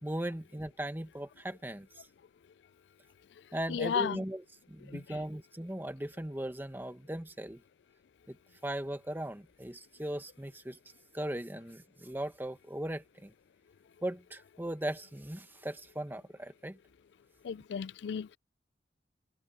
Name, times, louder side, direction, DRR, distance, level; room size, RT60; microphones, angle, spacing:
voice 1, 0.0-2.1 3.5-4.4 4.7-7.6 8.3-8.4 8.6-10.8 11.1-13.3 14.0-16.8, right 1 dB, 10° right, 1.2 m, -38 dB
voice 2, 3.7-4.2 4.9-5.2 17.4-18.4, left 7 dB, 70° left, 0.3 m, -34 dB
head